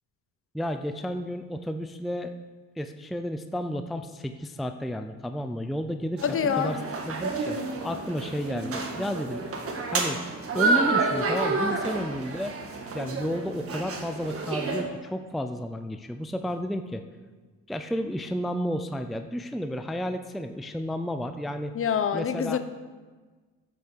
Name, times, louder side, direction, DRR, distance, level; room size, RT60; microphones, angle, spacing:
voice 1, 0.5-2.3 2.8-6.8 7.1-9.4 9.9-10.2 10.5-12.5 12.9-17.0 17.7-21.7 22.1-22.6, equal, ahead, 7 dB, 0.4 m, -32 dB
voice 2, 6.2-6.8 21.7-22.6, left 7 dB, 40° left, 11 dB, 0.8 m, -26 dB
sound 1, 6.2-14.8, right 3 dB, 45° right, 1.6 m, -29 dB
10.5 x 6.7 x 6.5 m, 1.4 s
cardioid pair, 105°, 33 cm